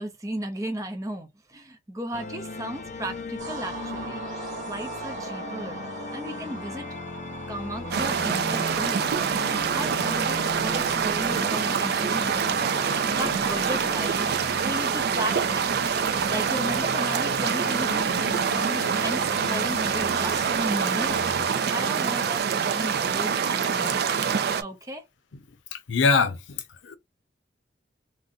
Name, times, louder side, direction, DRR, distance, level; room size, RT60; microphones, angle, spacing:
voice 1, 0.0-4.2 4.7-5.8 6.1-6.9 7.5-9.1 9.7-12.5 13.1-14.3 14.6-15.8 16.2-18.1 18.5-21.3 21.7-25.0, right 1 dB, 20° right, 0.6 m, -35 dB
sound 1, 2.1-21.5, left 3 dB, 40° left, 0.4 m, -38 dB
sound 2, 3.4-13.9, right 4 dB, 45° right, 1.0 m, -41 dB
sound 3, 7.9-24.6, right 6 dB, 60° right, 0.4 m, -25 dB
voice 2, 25.7-26.4 26.8-27.0, left 4 dB, 90° left, 0.6 m, -22 dB
2.6 x 2.1 x 3.7 m
head